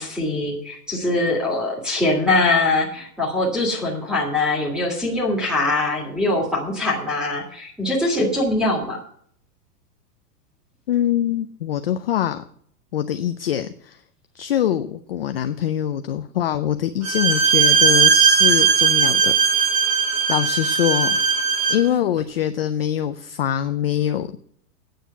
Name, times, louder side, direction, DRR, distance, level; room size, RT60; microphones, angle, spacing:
voice 1, 0.0-9.0, left 2 dB, ahead, -2 dB, 1.9 m, -22 dB
voice 2, 10.9-12.4 12.9-14.0 14.3-19.7 20.3-21.2 21.7-24.4, left 10 dB, 40° left, 9 dB, 0.4 m, -24 dB
Bowed string instrument, 17.0-21.9, right 6 dB, 25° right, 0.8 m, -18 dB
9.2 x 6.6 x 7.9 m, 0.63 s
supercardioid pair, 175°, 46 cm